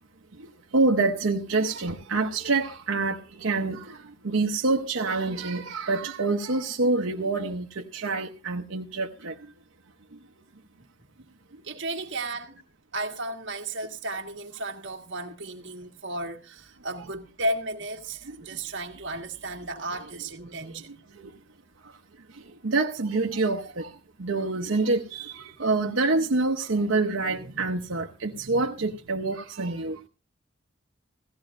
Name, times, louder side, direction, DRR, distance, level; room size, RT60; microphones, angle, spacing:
voice 1, 0.7-4.0 4.2-9.3 18.3-18.4 21.2-21.3 22.6-23.9 24.2-30.0, right 3 dB, 85° right, 0.9 m, -26 dB
voice 2, 11.6-12.6 12.9-21.0, right 2 dB, 60° right, 1.7 m, -34 dB
16.5 x 16.0 x 2.5 m
head